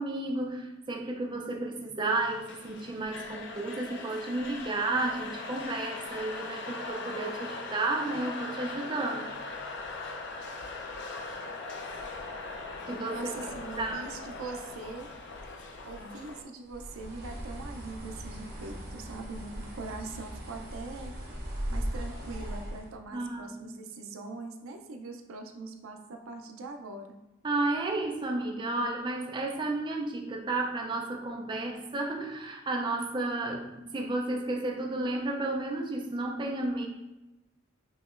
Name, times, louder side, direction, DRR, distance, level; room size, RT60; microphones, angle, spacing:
voice 1, 0.0-9.3 12.9-13.3 13.8-14.0 23.1-23.7 27.4-36.9, right 2 dB, 25° right, 0 dB, 0.4 m, -32 dB
sound 1, 2.2-16.4, left 3 dB, 55° left, 0.5 m, -40 dB
voice 2, 12.9-15.1 15.8-21.2 21.7-27.2, right 3 dB, 75° right, 4 dB, 0.5 m, -42 dB
Bird, 16.6-22.9, equal, 50° right, 1.3 m, -38 dB
5.7 x 2.9 x 2.4 m, 0.99 s
head